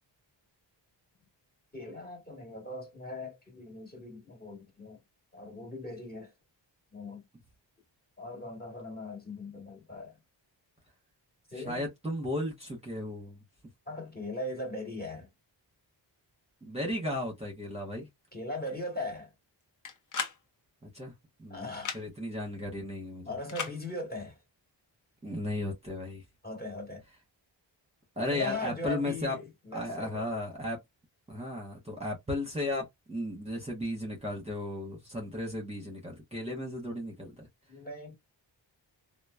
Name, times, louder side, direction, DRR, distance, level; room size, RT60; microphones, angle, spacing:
voice 1, 1.7-5.0 5.3-6.3 6.9-7.2 8.2-10.2 11.5-11.9 13.9-15.3 18.3-19.3 21.5-22.0 23.2-24.4 26.4-27.0 28.3-30.3 37.7-38.1, left 2 dB, 20° left, 1.4 m, -39 dB
voice 2, 11.5-13.4 16.6-18.1 20.8-21.1 21.4-23.3 25.2-26.2 28.2-29.4 29.7-30.8 31.3-37.5, left 1 dB, 15° right, 1.0 m, -35 dB
sound 1, 19.8-20.4 21.7-22.0 23.5-23.8, left 6 dB, 40° left, 0.7 m, -35 dB
3.0 x 2.0 x 2.3 m
cardioid pair, 80°, 45 cm